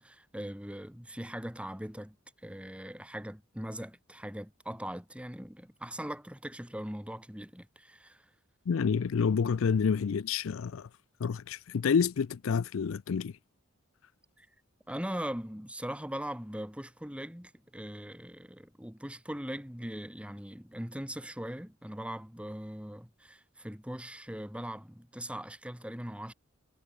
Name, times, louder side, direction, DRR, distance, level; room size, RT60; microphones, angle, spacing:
voice 1, 0.0-2.2 2.4-8.2 14.4-14.5 14.9-26.3, equal, 5° right, 3.3 m, -40 dB
voice 2, 8.7-10.9 11.2-13.4, left 6 dB, 65° left, 0.4 m, -28 dB
head